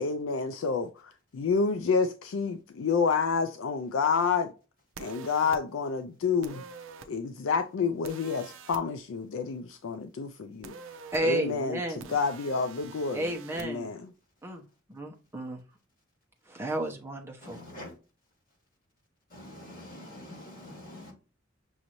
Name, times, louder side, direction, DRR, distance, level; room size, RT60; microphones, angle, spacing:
voice 1, 0.0-4.5 5.0-6.6 7.1-10.7 11.2-14.0, left 5 dB, 80° left, 0.4 m, -29 dB
sound 1, 5.0-5.6 6.4-7.1 8.0-8.8 10.6-11.2 12.0-13.7, right 5 dB, 75° right, 0.5 m, -46 dB
voice 2, 11.1-12.2 13.1-13.9 14.4-14.6 14.9-15.6 16.5-17.6, right 1 dB, 10° right, 0.8 m, -32 dB
voice 3, 17.4-17.9 19.3-21.1, left 1 dB, 45° left, 2.7 m, -45 dB
6.2 x 2.6 x 2.9 m
head